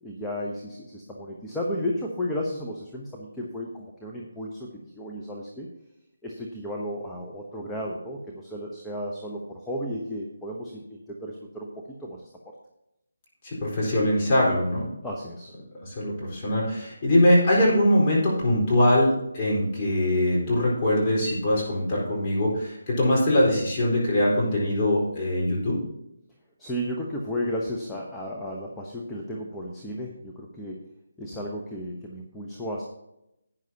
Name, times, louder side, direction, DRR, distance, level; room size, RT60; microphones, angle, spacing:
voice 1, 0.0-5.7 6.2-11.7 12.0-12.3 15.0-15.5 26.6-30.9 31.2-32.8, equal, 5° left, -3 dB, 1.0 m, -33 dB
voice 2, 13.4-14.9 15.8-25.8, left 1 dB, 30° left, -6 dB, 4.2 m, -22 dB
12.0 x 9.3 x 2.9 m, 0.84 s
figure-of-eight pair, 155°, 0 cm